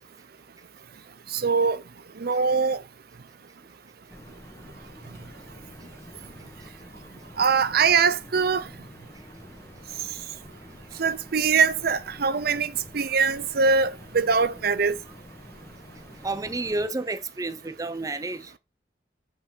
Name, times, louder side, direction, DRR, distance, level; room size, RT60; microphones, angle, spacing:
voice 1, 1.3-1.8 2.2-2.8 7.4-8.7 11.0-15.0, right 5 dB, 60° right, 0.6 m, -22 dB
sound 1, 4.1-16.9, left 1 dB, 15° left, 1.7 m, -47 dB
voice 2, 16.2-18.5, right 2 dB, 20° right, 0.7 m, -30 dB
8.4 x 5.6 x 4.5 m
head